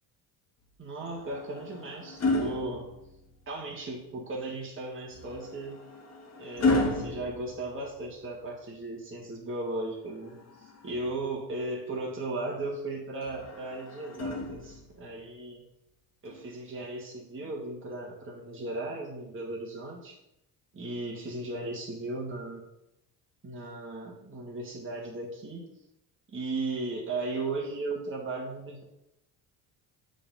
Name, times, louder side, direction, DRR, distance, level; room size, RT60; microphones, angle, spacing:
voice 1, 0.8-2.9 3.5-5.8 6.4-15.6 16.2-20.2 20.7-22.6 23.4-25.7 26.3-28.8, right 2 dB, 25° right, -2 dB, 1.7 m, -36 dB
sound 1, 1.1-3.5 5.1-8.3 10.1-11.2 13.2-15.0 16.3-16.5, left 2 dB, 35° left, 1.5 m, -33 dB
6.7 x 3.9 x 5.5 m, 0.85 s
supercardioid pair, 70°, 44 cm